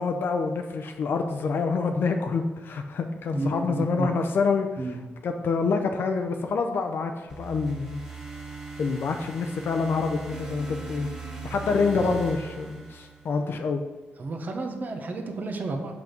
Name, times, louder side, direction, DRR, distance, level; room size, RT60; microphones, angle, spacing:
voice 1, 0.0-4.9 5.2-8.0 8.8-11.1 11.4-13.8, left 4 dB, 65° left, 5 dB, 0.6 m, -27 dB
voice 2, 3.3-4.1 4.8-5.0 11.9-12.1 14.2-15.9, right 3 dB, 45° right, 4 dB, 1.1 m, -31 dB
sound 1, 7.3-13.5, right 4 dB, 10° right, 2.0 m, -39 dB
6.0 x 5.2 x 5.9 m, 1.3 s
cardioid pair, 110°, 4 cm